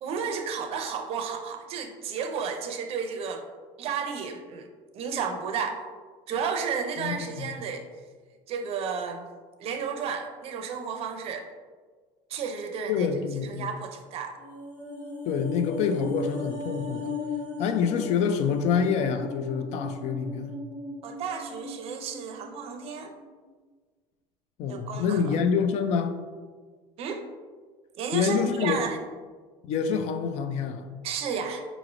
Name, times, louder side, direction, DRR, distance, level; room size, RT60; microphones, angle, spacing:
voice 1, 0.0-3.5 3.8-4.7 4.9-5.8 6.3-7.9 8.5-9.2 9.6-11.5 12.3-13.1 13.3-14.3 21.0-23.1 24.7-25.2 27.0-27.2 28.0-29.0 31.0-31.6, right 6 dB, 50° right, 0.5 m, -32 dB
voice 2, 7.0-7.5 12.9-13.7 15.2-17.2 17.6-20.6 24.6-26.2 28.1-28.9 29.6-30.9, left 6 dB, 60° left, 0.4 m, -27 dB
sound 1, 14.4-22.8 23.1-23.3, left 4 dB, 80° left, 1.3 m, -37 dB
4.8 x 3.0 x 2.5 m
cardioid pair, 120°, 13 cm